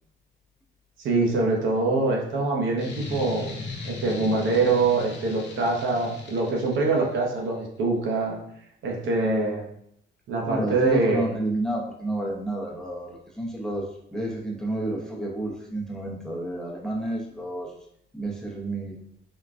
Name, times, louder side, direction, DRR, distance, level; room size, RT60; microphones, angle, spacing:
voice 1, 1.0-3.6 3.8-8.4 8.8-9.7 10.3-11.3, right 3 dB, 75° right, -1 dB, 0.8 m, -24 dB
sound 1, 2.8-7.2, left 4 dB, 65° left, 0.7 m, -38 dB
voice 2, 10.5-17.8 18.1-19.0, right 1 dB, 5° left, -3 dB, 0.7 m, -30 dB
3.7 x 2.2 x 2.4 m, 0.71 s
cardioid pair, 90°, 20 cm